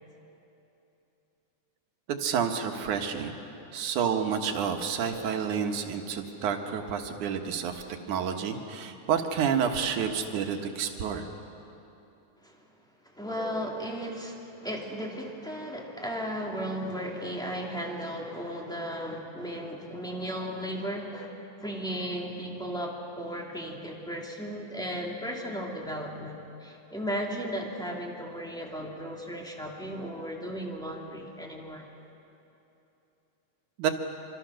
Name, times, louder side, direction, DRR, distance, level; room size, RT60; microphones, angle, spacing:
voice 1, 2.2-3.4 3.7-11.3 33.8-33.9, right 7 dB, 85° right, 4 dB, 2.8 m, -29 dB
voice 2, 13.1-21.3 21.6-31.8, equal, ahead, -1 dB, 2.3 m, -35 dB
26.0 x 26.0 x 6.4 m, 3.0 s
omnidirectional pair, 3.4 m